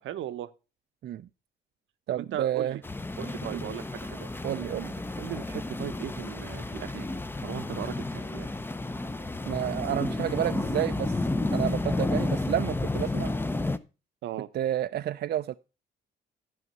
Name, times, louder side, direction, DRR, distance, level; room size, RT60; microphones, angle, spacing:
voice 1, 0.0-0.5 2.1-2.8 3.2-4.3 5.2-8.5 14.2-14.5, right 12 dB, 75° right, 0.7 m, -38 dB
voice 2, 2.1-2.8 3.5-3.6 4.4-4.9 9.5-11.2 11.5-13.3 14.5-15.5, right 11 dB, 55° right, 0.4 m, -30 dB
sound 1, 2.8-13.8, left 2 dB, 10° left, 0.6 m, -31 dB
11.0 x 5.7 x 5.3 m
cardioid pair, 90°, 20 cm